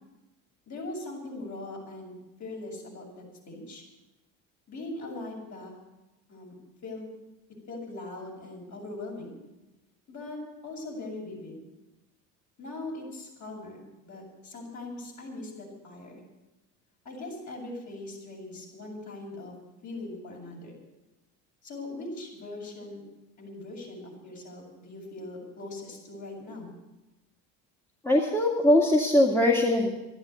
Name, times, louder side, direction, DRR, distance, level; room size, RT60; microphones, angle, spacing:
voice 1, 0.7-3.8 4.7-5.7 6.3-6.5 6.8-7.1 7.7-9.4 10.1-11.6 12.6-16.1 17.0-19.5 19.8-20.7 21.6-23.0 23.4-26.7, left 2 dB, 45° left, -1 dB, 7.5 m, -40 dB
voice 2, 28.0-29.9, left 1 dB, 5° left, 0 dB, 2.1 m, -21 dB
12.5 x 11.0 x 9.7 m, 1.0 s
supercardioid pair, 85°, 39 cm